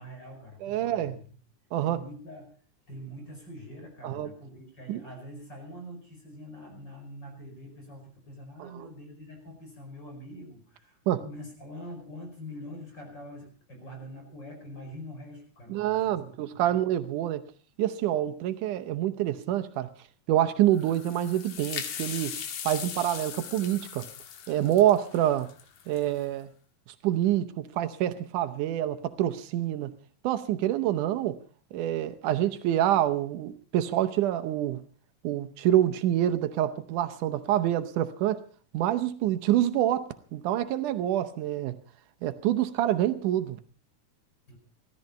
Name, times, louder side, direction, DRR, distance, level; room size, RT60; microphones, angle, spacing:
voice 1, 0.0-1.4 1.8-2.5 2.9-16.8 44.5-44.6, equal, 35° left, 5.7 m, -44 dB
voice 2, 0.6-1.2 1.7-2.0 4.0-4.3 4.9-5.0 8.6-8.7 11.1-11.2 15.7-17.4 17.8-19.9 20.3-22.4 22.7-24.1 24.5-25.5 25.9-26.5 27.0-29.9 30.2-31.4 31.7-34.8 35.2-38.5 38.7-41.8 42.2-43.6, right 12 dB, 85° right, 2.4 m, -26 dB
sound 1, 20.7-26.2, left 8 dB, 80° left, 2.9 m, -39 dB
16.5 x 13.5 x 5.5 m
omnidirectional pair, 3.6 m